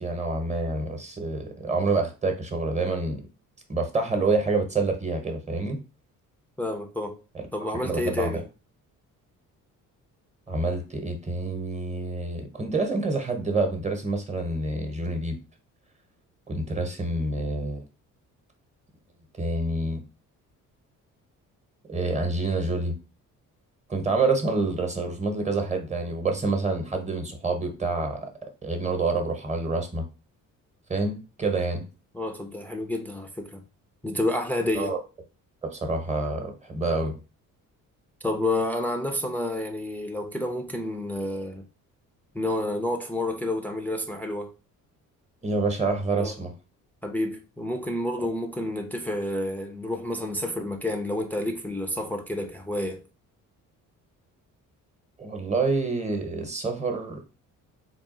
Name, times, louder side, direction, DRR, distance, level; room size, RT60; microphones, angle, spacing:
voice 1, 0.0-3.2 3.7-5.8 7.7-8.4 10.5-15.4 16.5-17.8 19.4-20.0 21.8-23.0 23.9-28.3 28.6-30.1 30.9-31.8 34.8-35.0 35.6-37.1 45.4-46.5 55.2-57.2, right 3 dB, 20° right, 1.0 m, -27 dB
voice 2, 6.6-7.2 7.5-8.5 32.1-33.6 34.0-35.0 38.2-41.6 42.3-44.5 46.2-46.4 47.0-53.0, left 1 dB, 5° left, 0.5 m, -29 dB
3.8 x 2.4 x 3.7 m
cardioid pair, 100°, 33 cm